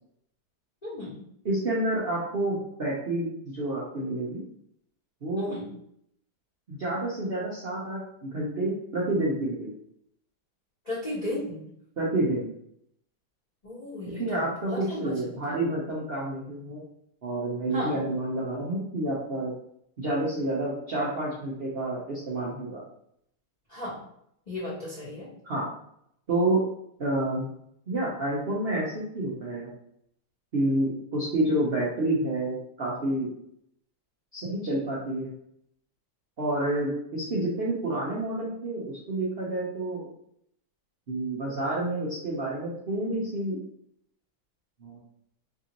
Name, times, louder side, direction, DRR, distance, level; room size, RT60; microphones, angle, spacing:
voice 1, 0.8-1.2 5.4-5.7 10.8-11.6 13.6-14.4 14.7-15.6 17.7-18.1 23.7-24.0 24.5-25.3, left 1 dB, 25° left, -9 dB, 0.9 m, -35 dB
voice 2, 1.4-4.4 5.2-5.5 6.7-9.7 12.0-12.5 14.2-16.8 17.2-19.5 20.0-22.8 25.4-25.7 26.3-26.6 27.0-27.4 27.9-29.7 30.5-33.3 34.3-35.3 36.4-40.1 41.1-43.6 44.8-45.0, right 1 dB, 85° right, -6 dB, 0.5 m, -29 dB
3.6 x 2.5 x 2.9 m, 0.71 s
omnidirectional pair, 2.2 m